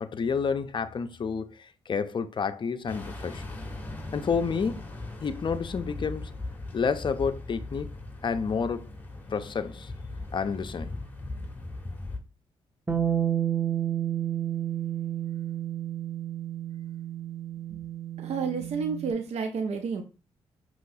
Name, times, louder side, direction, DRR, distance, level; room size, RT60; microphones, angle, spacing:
voice 1, 0.0-3.4 4.1-4.9 5.2-6.3 6.7-7.9 8.2-8.9 9.3-9.9 10.3-10.9, left 5 dB, 40° left, 0.5 m, -29 dB
sound 1, 2.9-12.2, left 2 dB, 15° left, 1.1 m, -39 dB
Bass guitar, 12.9-19.1, right 10 dB, 20° right, 0.8 m, -31 dB
voice 2, 18.2-20.0, right 5 dB, 60° right, 0.6 m, -30 dB
5.4 x 3.0 x 2.6 m
hypercardioid pair, 45°, 12 cm